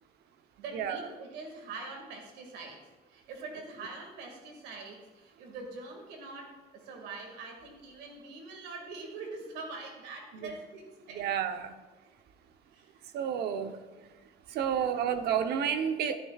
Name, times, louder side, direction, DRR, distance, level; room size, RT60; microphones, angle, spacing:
voice 1, 0.6-11.3 12.7-12.9, right 3 dB, 90° right, 3 dB, 2.1 m, -44 dB
voice 2, 11.1-11.7 13.1-13.8 14.5-16.2, right 8 dB, 70° right, 9 dB, 0.8 m, -30 dB
12.5 x 11.0 x 2.4 m, 1.3 s
cardioid pair, 110°, 17 cm